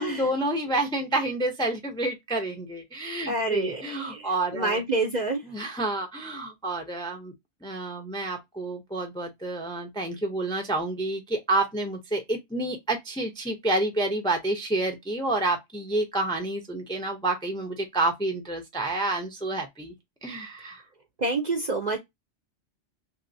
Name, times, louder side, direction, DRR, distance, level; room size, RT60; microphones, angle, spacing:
voice 1, 0.0-4.8 5.5-7.3 7.6-19.9 20.2-20.8, right 2 dB, 5° left, 0.4 m, -29 dB
voice 2, 3.3-5.4 21.2-22.0, right 2 dB, 50° right, 0.6 m, -28 dB
3.0 x 2.8 x 2.6 m
omnidirectional pair, 1.2 m